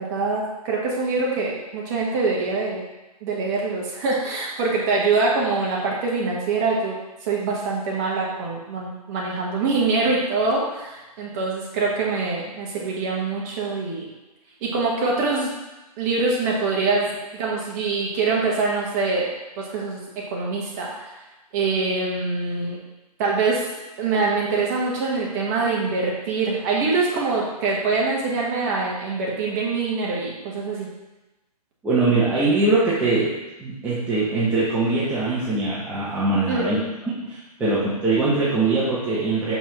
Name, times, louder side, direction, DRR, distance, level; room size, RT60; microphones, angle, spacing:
voice 1, 0.0-2.8 3.2-6.9 7.2-14.1 14.6-15.5 16.0-19.3 19.6-20.0 20.3-21.2 21.5-22.8 23.2-23.6 24.0-30.9 36.5-36.8, right 3 dB, 25° right, -3 dB, 1.2 m, -24 dB
voice 2, 31.8-33.3 33.6-36.8 37.2-39.6, right 3 dB, 5° right, -10 dB, 0.8 m, -22 dB
6.0 x 5.5 x 3.0 m, 1.1 s
hypercardioid pair, 165°, 20 cm